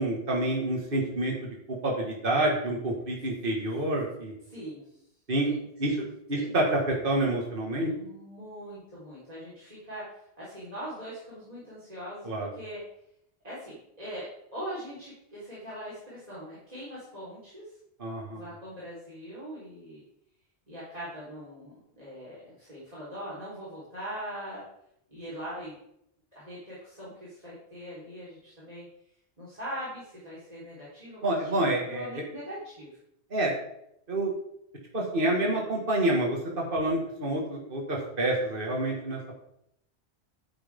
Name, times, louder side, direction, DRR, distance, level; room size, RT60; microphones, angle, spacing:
voice 1, 0.0-1.3 1.7-4.3 5.3-5.5 5.8-6.0 6.3-7.9 12.2-12.5 18.0-18.4 31.2-32.1 33.3-33.5 34.1-34.3 34.9-39.4, right 1 dB, 50° right, -1 dB, 2.2 m, -28 dB
voice 2, 4.5-5.0 5.4-6.0 6.3-6.5 7.9-12.8 13.4-14.3 14.5-17.8 18.3-20.0 20.7-24.6 25.1-25.7 26.3-28.9 29.4-32.9, equal, 35° right, -9 dB, 4.4 m, -41 dB
12.0 x 9.7 x 3.7 m, 0.75 s
omnidirectional pair, 1.1 m